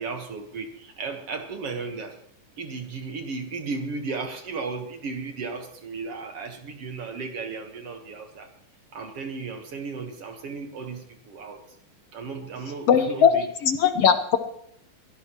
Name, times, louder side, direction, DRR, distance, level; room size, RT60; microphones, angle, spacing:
voice 1, 0.0-2.2 2.6-8.5 8.9-11.6 12.1-13.4, right 4 dB, 55° right, 5 dB, 2.0 m, -35 dB
voice 2, 12.9-13.3 13.6-14.4, left 7 dB, 65° left, 8 dB, 1.6 m, -19 dB
23.0 x 17.0 x 3.1 m, 0.71 s
omnidirectional pair, 3.9 m